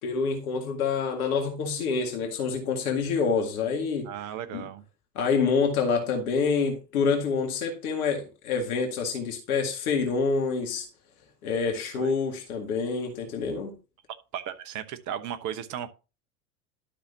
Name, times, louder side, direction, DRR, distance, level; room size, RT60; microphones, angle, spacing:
voice 1, 0.0-4.1 4.5-4.7 5.2-10.9 11.4-13.7, left 5 dB, 65° left, 2.1 m, -27 dB
voice 2, 4.0-4.8 11.9-12.1 14.3-15.9, right 9 dB, 35° right, 1.1 m, -35 dB
12.5 x 5.8 x 2.8 m
figure-of-eight pair, 85°, 47 cm